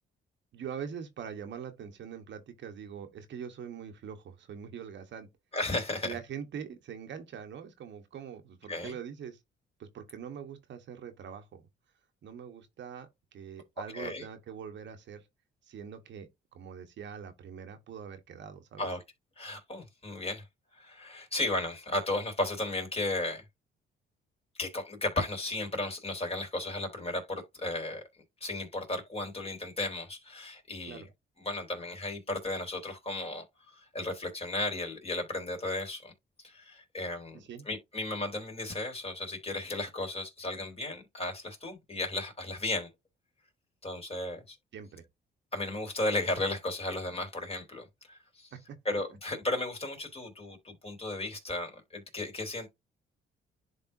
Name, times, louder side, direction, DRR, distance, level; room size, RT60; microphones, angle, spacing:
voice 1, 0.5-5.3 6.0-9.4 9.8-11.6 12.2-15.2 15.7-18.9 30.9-31.1 37.3-37.7 44.7-45.0, right 7 dB, 65° right, 1.2 m, -43 dB
voice 2, 5.5-6.2 8.7-9.0 13.9-14.3 18.8-19.0 19.4-20.4 20.7-23.5 24.6-28.0 28.4-31.0 31.4-36.1 36.4-37.4 37.7-42.9 43.8-44.6 45.5-48.5 48.9-52.7, left 2 dB, 30° left, 3.5 m, -34 dB
11.0 x 3.7 x 2.7 m
cardioid pair, 90°, 20 cm